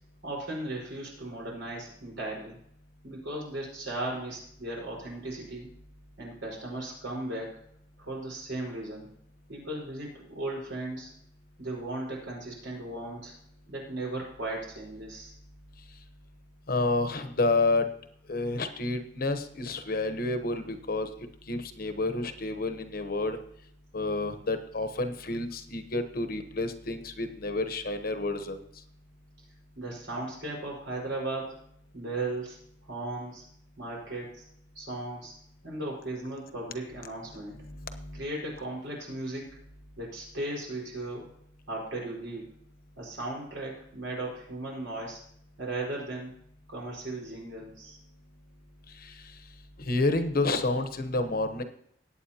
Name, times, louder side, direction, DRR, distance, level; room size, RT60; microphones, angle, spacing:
voice 1, 0.2-2.6 3.0-5.7 6.2-7.6 8.0-9.1 9.5-11.1 11.6-13.3 13.7-15.3 29.8-31.6 31.9-32.6 32.9-33.4 33.8-34.4 34.7-35.3 35.6-37.6 38.1-39.6 40.0-41.3 41.7-42.4 43.0-45.2 45.6-46.3 46.7-48.0, right 2 dB, 80° right, -3 dB, 4.9 m, -36 dB
voice 2, 16.7-17.9 18.3-21.1 21.5-23.4 23.9-28.6 37.6-38.2 49.0-49.1 49.9-51.6, left 2 dB, 50° left, 8 dB, 1.0 m, -29 dB
19.5 x 8.8 x 2.9 m, 0.70 s
head